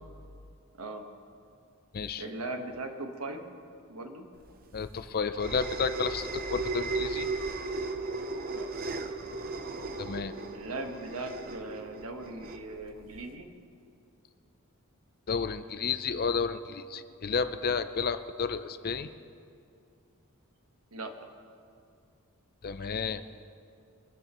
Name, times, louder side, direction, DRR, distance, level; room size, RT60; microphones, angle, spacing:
voice 1, 2.2-3.4 3.9-4.3 8.5-8.7 10.5-13.5 20.9-21.1, right 2 dB, 75° right, 4 dB, 1.4 m, -39 dB
sound 1, 4.5-13.3, right 3 dB, 40° right, 0.7 m, -36 dB
voice 2, 4.7-7.3 10.0-10.3 15.3-19.1 22.6-23.2, left 5 dB, 45° left, 11 dB, 0.5 m, -31 dB
23.5 x 13.5 x 3.1 m, 2.4 s
head